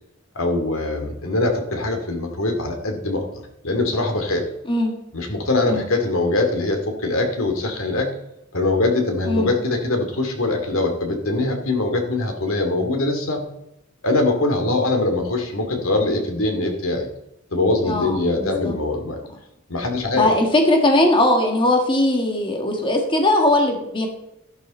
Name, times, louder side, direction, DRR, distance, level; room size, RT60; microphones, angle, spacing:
voice 1, 0.3-4.5 5.1-8.1 8.5-13.4 14.0-17.1 17.5-19.2 19.7-20.3, left 2 dB, 90° left, 4 dB, 2.6 m, -22 dB
voice 2, 17.9-18.7 20.2-24.1, left 1 dB, 25° left, 2 dB, 1.7 m, -19 dB
13.5 x 11.5 x 4.3 m, 0.87 s
head